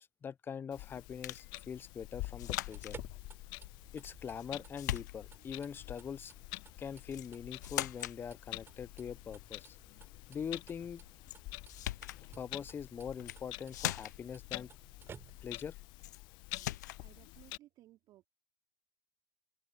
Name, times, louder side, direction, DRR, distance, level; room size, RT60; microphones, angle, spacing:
voice 1, 0.0-2.9 3.9-6.3 6.8-9.8 10.3-11.0 12.4-14.7 15.4-15.8, left 7 dB, 20° left, 0.7 m, -43 dB
Clock, 0.7-17.6, left 22 dB, 50° left, 1.4 m, -48 dB
sound 1, 1.2-1.5 2.4-3.0 4.0-4.5 4.8-5.5 7.1-7.3 7.6-8.2 11.3-11.4 11.7-12.2 13.1-13.4 13.7-14.3 16.0-16.2 16.5-17.0, left 14 dB, 70° left, 0.7 m, -40 dB
sound 2, 2.6-15.7, right 7 dB, 25° right, 7.1 m, -58 dB
voice 2, 17.0-18.3, right 15 dB, 40° right, 3.3 m, -60 dB
open air
hypercardioid pair, 100°, 10 cm